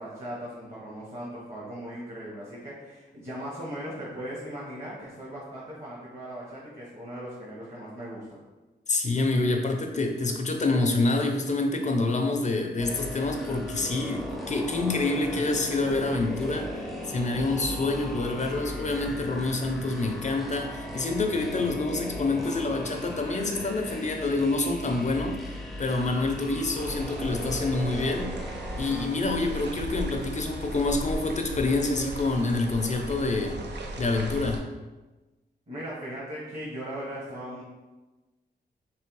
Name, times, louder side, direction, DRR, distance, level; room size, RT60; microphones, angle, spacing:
voice 1, 0.0-8.4 35.7-37.6, equal, 35° right, -6 dB, 1.2 m, -38 dB
voice 2, 8.9-28.4 28.8-33.6 34.0-34.6, left 2 dB, 40° left, 3 dB, 0.5 m, -27 dB
sound 1, 12.8-29.1, left 1 dB, ahead, 0.6 m, -37 dB
sound 2, 26.7-34.6, right 1 dB, 70° right, 0.6 m, -36 dB
3.4 x 3.1 x 4.6 m, 1.2 s
wide cardioid pair, 110°, 18 cm